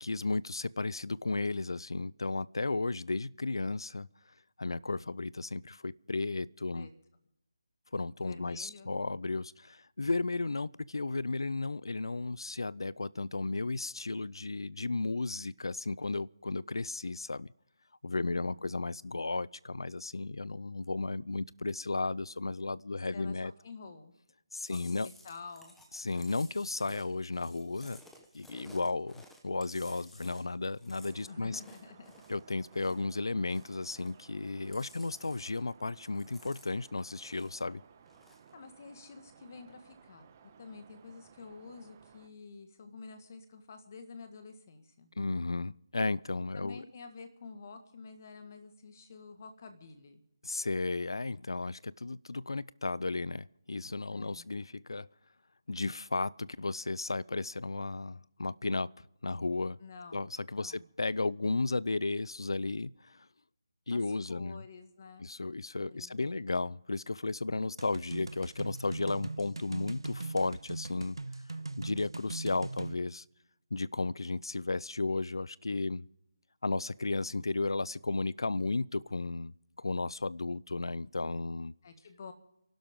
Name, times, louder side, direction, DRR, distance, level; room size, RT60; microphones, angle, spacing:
voice 1, 0.0-4.1 4.6-6.9 7.9-17.5 18.0-23.5 24.5-25.1 25.9-28.0 28.3-31.6 32.3-37.8 45.2-46.8 50.4-55.1 55.7-58.9 59.2-59.8 60.1-63.3 63.9-64.6 65.2-71.2 71.8-73.2 73.7-76.1 76.6-81.7, left 3 dB, 80° left, 0.5 m, -34 dB
voice 2, 8.2-8.9 18.2-18.6 23.1-24.1 24.7-25.8 31.3-32.1 32.9-33.0 38.5-40.3 40.6-45.1 46.5-50.2 54.1-54.5 59.8-60.2 60.6-60.9 63.9-64.0 64.3-65.3 65.9-66.7 81.8-82.3, left 4 dB, 40° left, 1.8 m, -49 dB
Chewing mastication, 24.6-33.1 33.4-34.3 34.6-35.7 36.0-37.7 38.0-38.5, left 1 dB, 5° left, 1.1 m, -57 dB
sound 1, 31.0-42.3, right 7 dB, 25° right, 1.3 m, -59 dB
sound 2, 67.8-72.9, right 3 dB, 85° right, 1.0 m, -40 dB
29.5 x 12.0 x 3.7 m
figure-of-eight pair, 165°, 2 cm